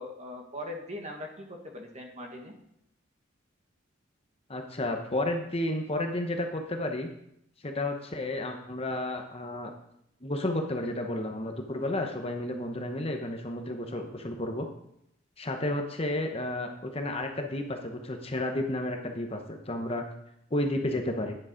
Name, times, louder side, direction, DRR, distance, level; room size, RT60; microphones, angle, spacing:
voice 1, 0.0-2.5, left 1 dB, 35° right, 2 dB, 1.6 m, -40 dB
voice 2, 4.5-7.1 7.6-9.7 10.2-14.7 15.4-20.0 20.5-21.4, left 1 dB, 30° left, 4 dB, 0.9 m, -32 dB
9.9 x 7.1 x 5.1 m, 0.77 s
head